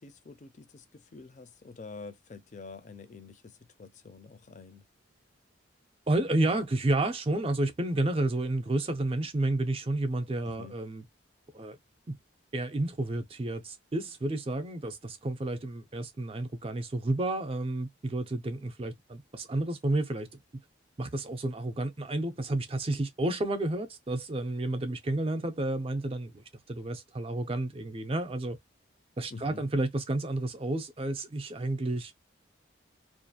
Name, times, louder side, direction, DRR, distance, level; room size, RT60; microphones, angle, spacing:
voice 1, 0.0-4.8 10.4-10.8 29.3-29.7, left 4 dB, 35° left, 0.4 m, -47 dB
voice 2, 6.1-11.0 11.5-11.8 12.1-12.2 12.5-20.4 21.0-28.6 29.2-32.1, right 2 dB, 30° right, 0.4 m, -31 dB
2.5 x 2.3 x 2.6 m
head